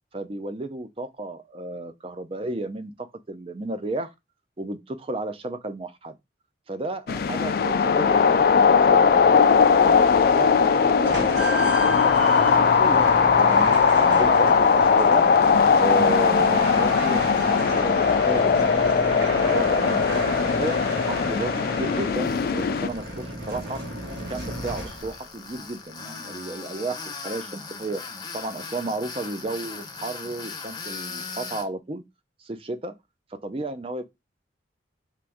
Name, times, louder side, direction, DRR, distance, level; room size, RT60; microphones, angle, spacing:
voice 1, 0.1-4.1 4.6-6.2 6.7-10.0 10.3-13.7 14.0-15.3 15.8-20.8 21.1-23.8 24.1-28.0 28.3-32.0 32.4-32.9 33.3-34.0, right 2 dB, 30° right, 0.5 m, -33 dB
sound 1, 7.1-22.9, left 6 dB, 55° left, 0.3 m, -19 dB
sound 2, 11.0-25.3, right 1 dB, 70° right, 1.9 m, -33 dB
Tools, 22.1-31.7, left 4 dB, 20° left, 0.7 m, -39 dB
4.4 x 2.6 x 3.5 m
head